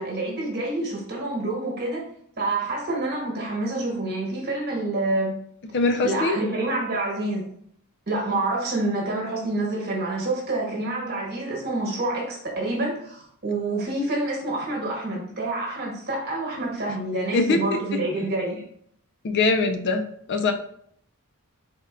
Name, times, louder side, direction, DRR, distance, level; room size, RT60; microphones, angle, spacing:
voice 1, 0.0-2.1 2.4-5.4 6.0-7.4 8.1-18.6, right 2 dB, 45° right, -1 dB, 1.2 m, -27 dB
voice 2, 5.7-6.4 17.3-17.8 19.2-20.0 20.3-20.5, left 3 dB, 50° left, 6 dB, 0.4 m, -22 dB
4.3 x 3.5 x 2.3 m, 0.66 s
head